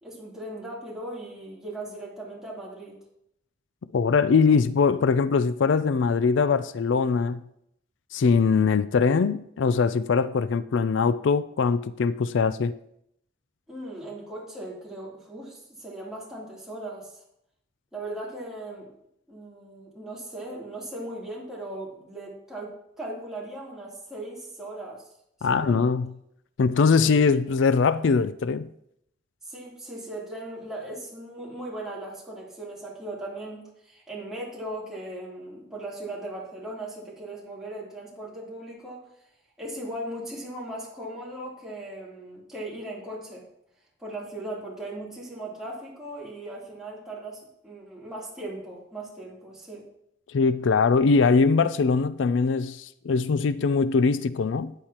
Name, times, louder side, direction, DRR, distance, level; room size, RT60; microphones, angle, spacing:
voice 1, 0.0-3.0 13.7-17.2 17.9-18.9 19.3-25.0 25.4-25.9 29.5-39.0 39.6-43.5 44.0-49.9, right 1 dB, 5° right, 3.2 m, -38 dB
voice 2, 3.9-7.4 8.1-12.7 25.4-26.1 26.6-28.7 50.3-54.7, left 5 dB, 85° left, 0.4 m, -22 dB
13.0 x 9.6 x 2.9 m
head